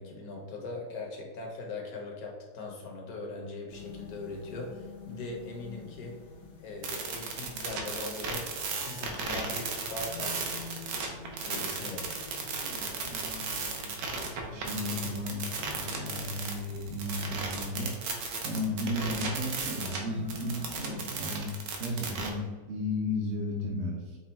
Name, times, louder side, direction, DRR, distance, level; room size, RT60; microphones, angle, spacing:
voice 1, 0.0-6.1 6.6-10.7 11.4-12.1 18.9-19.1, left 2 dB, 60° left, 0 dB, 1.4 m, -40 dB
sound 1, 3.7-20.9, left 3 dB, 80° left, 1.6 m, -48 dB
sound 2, 6.8-20.0 20.3-22.3, right 4 dB, 80° right, 1.4 m, -35 dB
voice 2, 12.5-15.4 15.7-17.9 18.4-24.2, left 1 dB, 55° right, -3 dB, 0.9 m, -35 dB
5.4 x 2.3 x 4.2 m, 1.3 s
omnidirectional pair, 1.8 m